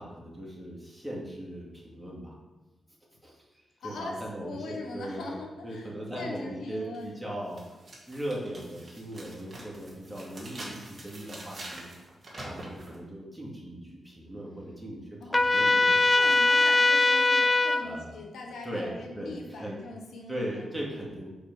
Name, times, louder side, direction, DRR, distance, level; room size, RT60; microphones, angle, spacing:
voice 1, 0.0-2.3 3.2-11.9 12.4-16.0 17.6-18.2 18.6-19.8 20.3-21.3, right 1 dB, ahead, -5 dB, 2.2 m, -39 dB
voice 2, 3.8-4.1 4.4-5.9 6.1-7.1 15.2-15.8 16.1-20.7, left 2 dB, 85° left, 0 dB, 1.0 m, -41 dB
sound 1, 6.9-7.0 7.5-13.0, right 1 dB, 40° right, 1.9 m, -45 dB
Trumpet, 15.3-17.8, left 2 dB, 20° left, 0.4 m, -21 dB
5.1 x 4.3 x 6.0 m, 1.1 s
cardioid pair, 70°, 0 cm